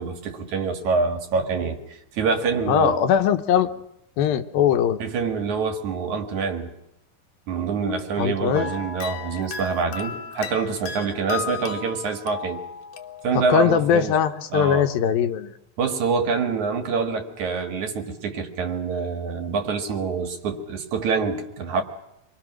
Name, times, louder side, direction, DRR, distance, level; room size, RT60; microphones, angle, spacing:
voice 1, 0.0-3.1 5.0-6.7 7.5-12.6 13.2-14.2 14.5-14.9 15.8-21.8, right 5 dB, 55° right, 5 dB, 3.1 m, -26 dB
voice 2, 2.7-3.7 4.2-5.0 8.2-8.7 13.3-15.5, left 8 dB, 80° left, 8 dB, 2.8 m, -20 dB
sound 1, 8.5-13.7, left 6 dB, 65° left, 2.3 m, -35 dB
27.5 x 22.0 x 6.2 m, 0.85 s
omnidirectional pair, 4.2 m